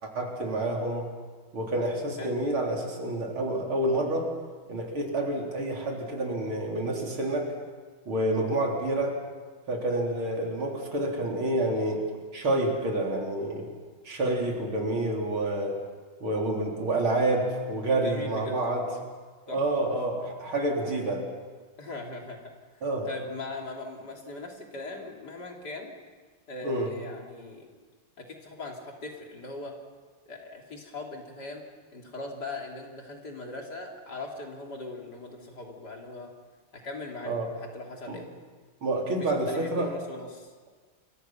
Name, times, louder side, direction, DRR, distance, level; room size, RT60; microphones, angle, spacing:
voice 1, 0.0-1.1 1.5-4.3 4.7-7.5 8.1-9.1 9.7-12.0 12.3-13.7 14.0-15.8 16.2-18.8 19.5-21.2 22.8-23.1 26.6-26.9 37.2-37.5 38.1-38.2 38.8-39.9, right 1 dB, 90° right, 0 dB, 4.6 m, -28 dB
voice 2, 18.0-19.0 19.5-19.8 21.8-25.9 26.5-27.7 28.2-29.7 30.3-31.6 31.9-36.3 36.7-38.3 39.5-40.5, left 2 dB, 50° left, 0 dB, 3.7 m, -40 dB
28.5 x 23.5 x 5.9 m, 1.5 s
omnidirectional pair, 2.2 m